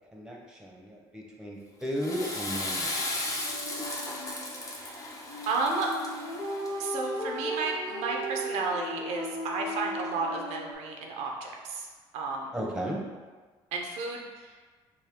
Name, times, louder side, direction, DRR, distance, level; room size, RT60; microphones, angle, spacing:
voice 1, 0.1-3.4 12.5-13.0, equal, 5° right, -2 dB, 0.9 m, -35 dB
Water / Toilet flush, 1.8-7.0, left 1 dB, 30° left, 0.8 m, -35 dB
sound 1, 3.4-10.7, equal, 70° left, 0.8 m, -37 dB
voice 2, 5.5-5.9 6.8-11.9 12.1-12.5 13.7-14.2, right 3 dB, 85° right, 0 dB, 0.5 m, -32 dB
4.3 x 2.2 x 3.5 m, 1.4 s
supercardioid pair, 75°, 11 cm